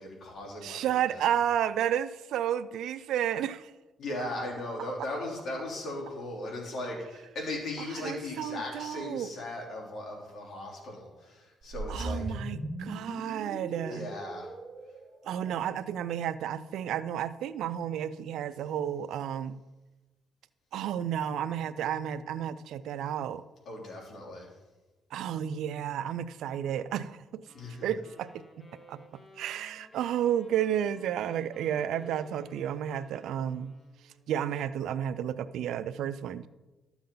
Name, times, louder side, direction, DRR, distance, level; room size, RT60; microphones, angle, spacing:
voice 1, 0.0-1.3 4.0-12.3 13.9-14.5 23.6-24.5 27.5-27.9, left 1 dB, 65° left, -2 dB, 3.2 m, -38 dB
voice 2, 0.6-3.7 8.0-9.3 11.9-14.1 15.2-19.6 20.7-23.4 25.1-27.4 27.8-28.3 28.9-29.0 29.4-33.7 34.3-36.5, right 10 dB, 80° right, 14 dB, 0.4 m, -32 dB
sound 1, 11.6-15.9, right 1 dB, 25° right, 2.0 m, -39 dB
sound 2, 27.5-34.4, equal, 25° left, 1.5 m, -57 dB
12.5 x 7.1 x 3.9 m, 1.1 s
cardioid pair, 90°, 0 cm